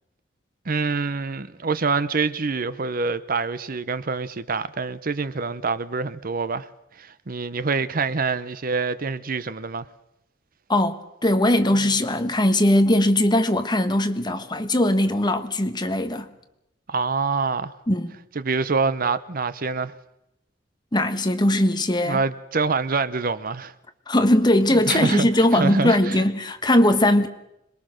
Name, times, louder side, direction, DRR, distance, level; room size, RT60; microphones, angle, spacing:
voice 1, 0.7-6.7 7.0-9.9 16.9-17.7 18.3-19.9 22.1-23.7 24.7-26.2, right 4 dB, 50° right, 0.8 m, -26 dB
voice 2, 10.7-16.3 17.9-18.1 20.9-22.2 24.1-27.3, left 1 dB, 25° left, 1.4 m, -20 dB
26.0 x 21.0 x 6.5 m
head